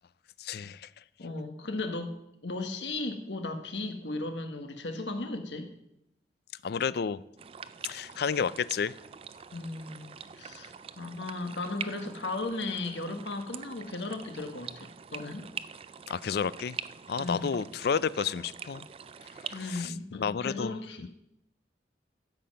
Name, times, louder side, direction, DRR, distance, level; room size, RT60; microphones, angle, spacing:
voice 1, 0.4-0.9 6.6-7.2 7.8-8.9 16.1-16.8 17.1-18.9 19.5-20.8, left 6 dB, 60° left, 18 dB, 0.4 m, -31 dB
voice 2, 1.2-2.2 2.4-5.7 9.5-10.1 10.4-15.5 17.2-17.5 19.5-21.1, left 2 dB, 80° left, 6 dB, 1.4 m, -36 dB
sound 1, 7.4-19.9, right 7 dB, 30° right, 0.3 m, -44 dB
12.5 x 7.6 x 5.4 m, 0.80 s
head